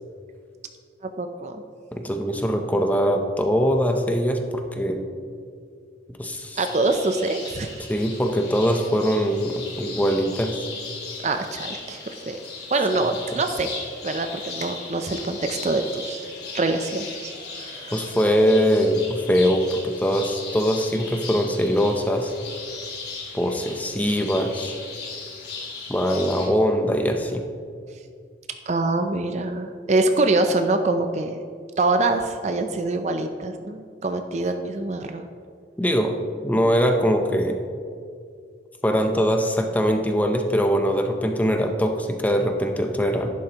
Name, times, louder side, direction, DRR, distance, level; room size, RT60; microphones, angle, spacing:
voice 1, 1.0-1.6 6.6-7.8 11.2-12.4 12.7-13.7 14.0-18.0 28.7-31.4 31.8-35.3, right 2 dB, 40° right, 7 dB, 0.5 m, -25 dB
voice 2, 1.9-5.0 6.2-6.6 7.9-10.6 17.9-22.3 23.3-24.7 25.9-27.4 35.8-36.2 36.4-37.6 38.8-43.3, equal, 10° left, 4 dB, 0.6 m, -22 dB
sound 1, 6.6-26.5, left 4 dB, 65° left, 2.6 m, -37 dB
11.5 x 11.0 x 2.9 m, 2.2 s
head